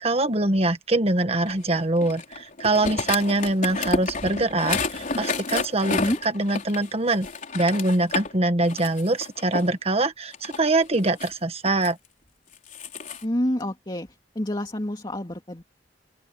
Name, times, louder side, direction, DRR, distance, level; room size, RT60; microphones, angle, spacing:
voice 1, 0.0-7.3 7.5-12.0, right 2 dB, 35° right, 1.6 m, -23 dB
sound 1, 1.5-8.3 8.7-9.7 10.3-11.9 12.5-13.2, left 3 dB, 45° left, 4.2 m, -30 dB
voice 2, 5.9-6.2 13.2-14.1 14.3-15.6, left 1 dB, 25° left, 2.5 m, -27 dB
open air
head